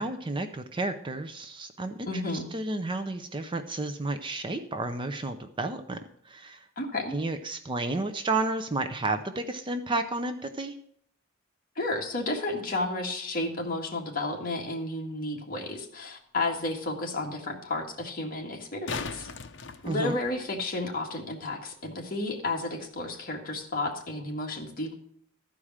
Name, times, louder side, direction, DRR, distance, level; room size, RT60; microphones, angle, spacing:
voice 1, 0.0-6.0 6.2-6.7 7.1-10.8 19.8-20.2, right 2 dB, 25° right, 8 dB, 0.6 m, -31 dB
voice 2, 2.1-2.5 6.8-7.1 11.8-19.3 19.8-25.0, left 2 dB, 40° left, 1 dB, 1.8 m, -32 dB
sound 1, 18.5-20.6 23.5-23.6, left 4 dB, 60° left, 0.8 m, -38 dB
13.0 x 4.9 x 7.3 m, 0.65 s
head